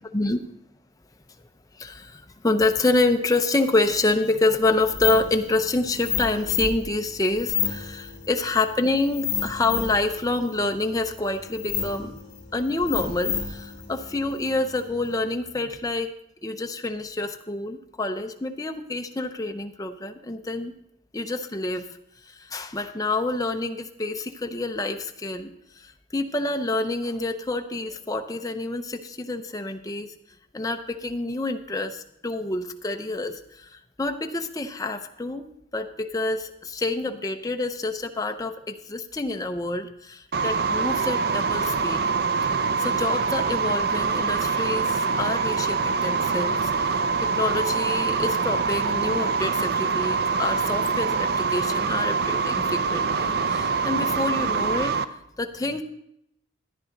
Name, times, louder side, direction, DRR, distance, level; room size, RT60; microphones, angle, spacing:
voice 1, 1.8-12.1 12.5-16.1 16.4-20.7 21.1-21.9 22.3-25.5 25.8-30.1 30.5-42.1 42.8-55.8, left 2 dB, 20° left, 5 dB, 0.6 m, -27 dB
sound 1, 4.7-15.2, left 7 dB, 35° left, 2.0 m, -32 dB
sound 2, 40.3-55.0, right 5 dB, 55° right, 0.5 m, -24 dB
13.5 x 10.0 x 3.8 m, 0.78 s
head